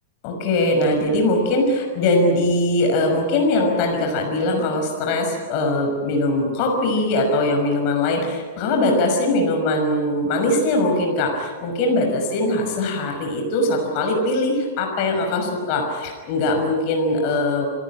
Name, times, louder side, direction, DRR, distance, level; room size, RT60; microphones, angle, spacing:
voice 1, 0.2-17.7, left 2 dB, 45° left, 2 dB, 5.9 m, -21 dB
27.0 x 19.0 x 8.9 m, 1.5 s
figure-of-eight pair, 100°, 0 cm